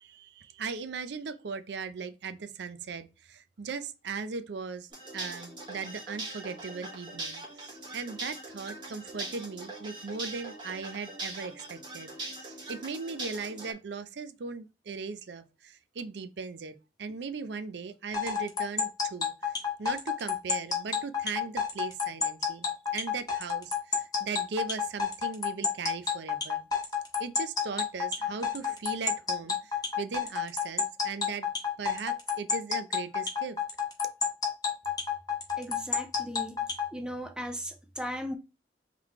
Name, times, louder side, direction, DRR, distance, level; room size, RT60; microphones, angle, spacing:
voice 1, 0.0-26.7 27.2-31.5 31.8-33.6, right 5 dB, 65° right, 0.5 m, -38 dB
sound 1, 4.9-13.7, right 2 dB, 25° right, 1.4 m, -41 dB
sound 2, 18.1-36.9, left 6 dB, 20° left, 0.9 m, -29 dB
voice 2, 35.6-36.7 36.9-38.4, equal, 5° right, 0.5 m, -37 dB
3.8 x 3.2 x 3.5 m
head